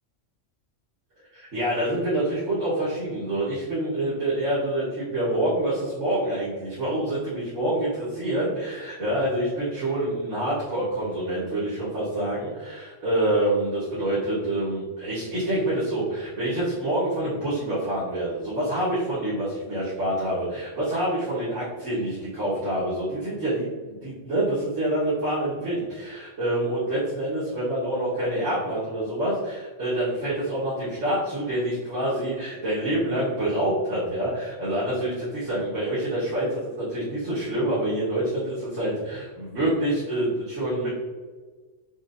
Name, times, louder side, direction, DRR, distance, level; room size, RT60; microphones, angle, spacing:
voice 1, 1.3-40.9, right 1 dB, 85° right, -12 dB, 1.8 m, -27 dB
6.0 x 3.2 x 2.6 m, 1.4 s
omnidirectional pair, 1.3 m